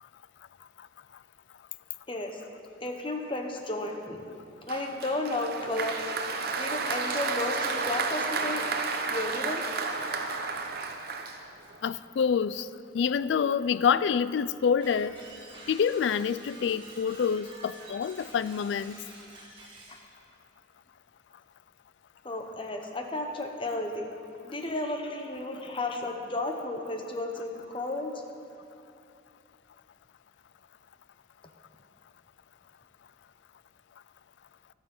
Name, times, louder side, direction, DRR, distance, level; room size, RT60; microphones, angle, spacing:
voice 1, 2.1-2.4 2.8-4.2 4.7-6.0 6.6-8.7 9.1-9.6 19.9-20.0 22.2-24.1 24.4-28.1, left 2 dB, 25° left, 4 dB, 1.1 m, -33 dB
Applause, 4.7-11.8, right 4 dB, 55° right, 0.9 m, -32 dB
voice 2, 11.8-12.7 12.9-15.1 15.7-19.0, left 7 dB, 65° left, 17 dB, 0.3 m, -27 dB
sound 1, 14.8-20.0, right 2 dB, 25° right, 2.0 m, -49 dB
12.0 x 9.4 x 7.1 m, 2.5 s
head